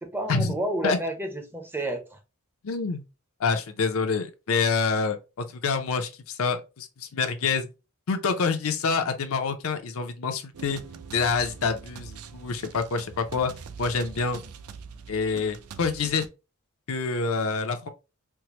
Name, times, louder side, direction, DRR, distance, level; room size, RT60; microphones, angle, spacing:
voice 1, 0.0-2.2, right 1 dB, 10° right, 0.5 m, -30 dB
voice 2, 2.6-3.0 3.4-7.7 8.1-10.8 11.1-13.5 13.8-14.4 15.1-16.2 16.9-17.9, left 5 dB, 70° left, 0.5 m, -27 dB
sound 1, 10.5-16.3, right 6 dB, 85° right, 0.4 m, -43 dB
4.5 x 2.0 x 2.9 m
head